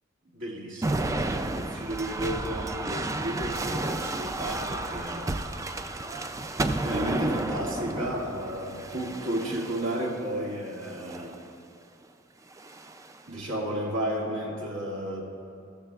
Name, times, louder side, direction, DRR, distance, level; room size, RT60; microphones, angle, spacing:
voice 1, 0.3-5.3 6.8-11.4 13.3-15.2, right 1 dB, 75° right, -2 dB, 2.0 m, -32 dB
sound 1, 0.8-10.2 10.9-11.4 12.5-13.2, right 2 dB, 15° right, 0.3 m, -32 dB
14.5 x 14.0 x 2.4 m, 2.4 s
head